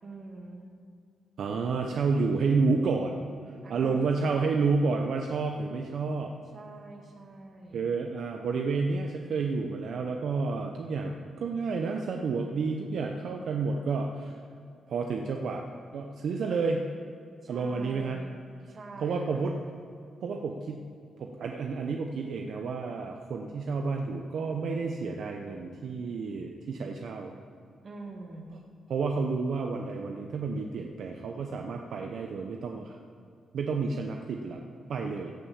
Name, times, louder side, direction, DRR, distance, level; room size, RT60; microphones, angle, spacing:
voice 1, 0.0-0.7 3.6-4.8 6.5-7.9 17.4-18.4 18.7-19.5 27.8-28.6, right 2 dB, 40° right, 1 dB, 2.1 m, -45 dB
voice 2, 1.4-3.2 3.7-6.3 7.7-14.4 14.9-15.6 15.9-16.9 17.5-18.2 19.0-19.5 20.2-20.8 21.2-27.3 28.9-33.0 33.5-35.3, right 4 dB, 65° right, 2 dB, 0.8 m, -30 dB
16.0 x 5.8 x 7.2 m, 2.4 s
cardioid pair, 120°, 0 cm